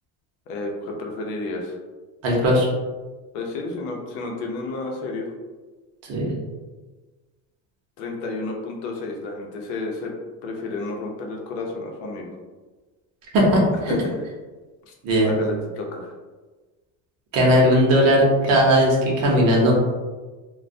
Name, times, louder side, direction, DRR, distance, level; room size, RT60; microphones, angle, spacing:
voice 1, 0.5-1.8 3.3-5.3 8.0-10.1 10.4-12.3 13.7-14.1 14.9-15.0 15.2-16.1, left 2 dB, 75° left, 0 dB, 0.7 m, -31 dB
voice 2, 2.2-2.7 6.1-6.3 13.3-13.9 15.0-15.3 17.3-19.7, equal, 40° right, -2 dB, 0.7 m, -18 dB
2.2 x 2.1 x 2.6 m, 1.3 s
cardioid pair, 150°, 38 cm